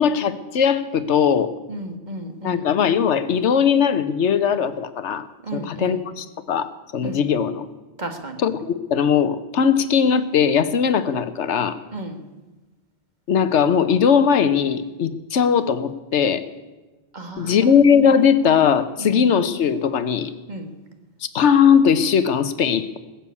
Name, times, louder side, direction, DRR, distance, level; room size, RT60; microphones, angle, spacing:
voice 1, 0.0-1.5 2.4-5.3 5.5-7.7 8.4-11.8 13.3-16.4 17.4-20.3 21.3-23.0, left 7 dB, 90° left, 13 dB, 1.2 m, -19 dB
voice 2, 1.7-2.7 5.4-6.0 7.0-7.2 8.0-8.4 11.9-12.2 17.1-17.6 19.0-19.3 20.5-20.7, right 1 dB, 40° right, 5 dB, 1.7 m, -33 dB
20.5 x 7.1 x 8.4 m, 1.2 s
omnidirectional pair, 1.1 m